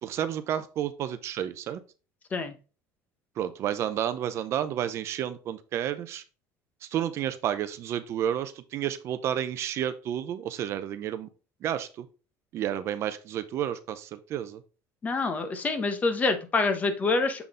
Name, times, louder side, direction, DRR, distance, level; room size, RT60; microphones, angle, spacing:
voice 1, 0.0-1.8 3.4-6.2 6.9-11.3 11.6-12.1 12.5-14.6, right 10 dB, 45° right, 12 dB, 0.5 m, -31 dB
voice 2, 15.0-17.5, left 3 dB, 25° left, 8 dB, 0.9 m, -26 dB
6.9 x 3.9 x 3.6 m, 0.34 s
cardioid pair, 150°, 6 cm